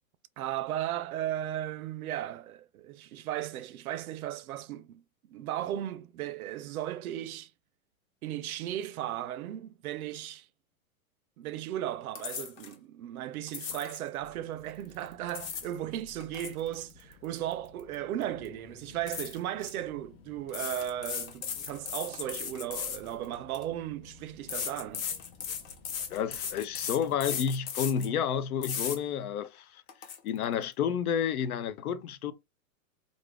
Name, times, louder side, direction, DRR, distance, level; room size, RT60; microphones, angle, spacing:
voice 1, 0.4-5.0 5.3-7.5 8.2-10.5 11.4-25.1, right 12 dB, 80° right, 0.6 m, -36 dB
sound 1, 12.1-12.7 13.5-14.0 15.1-15.7 16.1-17.9 18.2-18.5 19.1-19.7 20.5-23.6 24.5-28.1 28.6-29.0 29.4-29.5 29.9-30.2, left 7 dB, 65° left, 1.0 m, -37 dB
sound 2, 14.2-27.3, left 4 dB, 45° left, 0.7 m, -56 dB
voice 2, 26.1-29.8 30.2-32.3, left 8 dB, 85° left, 0.7 m, -30 dB
2.6 x 2.5 x 3.3 m
supercardioid pair, 170°, 42 cm